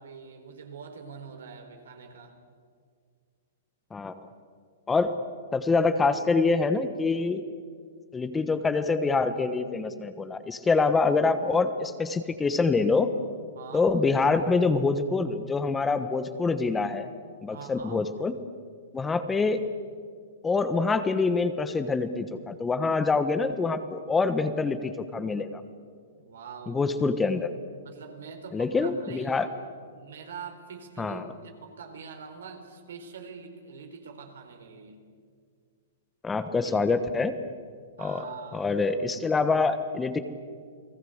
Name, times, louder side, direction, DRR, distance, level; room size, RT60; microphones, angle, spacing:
voice 1, 0.0-2.3 13.5-13.9 17.5-18.0 26.2-26.9 27.8-29.4 29.9-35.0 36.6-36.8 38.0-38.7, right 6 dB, 75° right, 5 dB, 4.1 m, -44 dB
voice 2, 3.9-4.3 4.9-5.2 5.5-7.4 8.1-13.1 13.7-17.1 17.4-18.3 18.9-19.6 20.4-25.6 26.7-27.5 28.5-29.5 31.0-31.2 36.2-37.3 38.0-38.2 38.5-40.2, left 4 dB, 10° left, 10 dB, 1.3 m, -25 dB
29.5 x 18.5 x 8.0 m, 2.1 s
hypercardioid pair, 130°, 0 cm